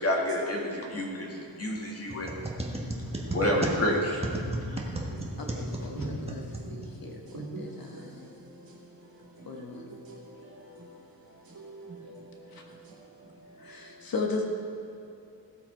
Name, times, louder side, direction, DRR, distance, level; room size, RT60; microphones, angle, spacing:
voice 1, 0.0-2.5 3.3-4.3, left 1 dB, 35° left, -2 dB, 2.3 m, -29 dB
sound 1, 2.1-7.2, right 1 dB, 15° right, 1.3 m, -34 dB
voice 2, 4.4-13.9, right 2 dB, 55° right, -3 dB, 2.9 m, -45 dB
voice 3, 5.4-6.4 6.7-8.3 9.4-9.9 12.5-12.6 13.6-14.5, left 3 dB, 55° left, 1 dB, 1.6 m, -36 dB
17.0 x 7.5 x 4.7 m, 2.7 s
wide cardioid pair, 120°, 43 cm